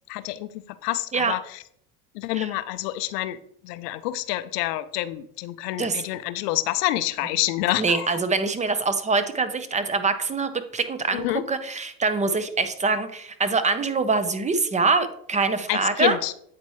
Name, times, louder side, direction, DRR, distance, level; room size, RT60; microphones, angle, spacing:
voice 1, 0.1-0.5 0.8-1.6 2.1-3.4 3.6-8.2 11.1-11.4 15.7-16.3, left 15 dB, 85° left, 0.6 m, -27 dB
voice 2, 7.8-16.2, right 4 dB, 15° right, 0.5 m, -24 dB
8.4 x 4.3 x 3.0 m
supercardioid pair, 90°, 47 cm